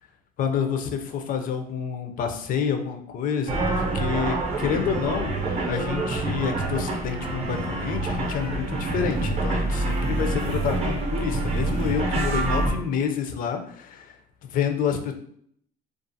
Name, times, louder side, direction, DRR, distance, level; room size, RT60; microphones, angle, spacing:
voice 1, 0.4-14.1 14.4-15.1, left 7 dB, 55° left, 6 dB, 0.4 m, -28 dB
sound 1, 3.5-12.7, right 2 dB, 40° right, 0.6 m, -26 dB
2.5 x 2.4 x 2.6 m, 0.65 s
cardioid pair, 110°, 17 cm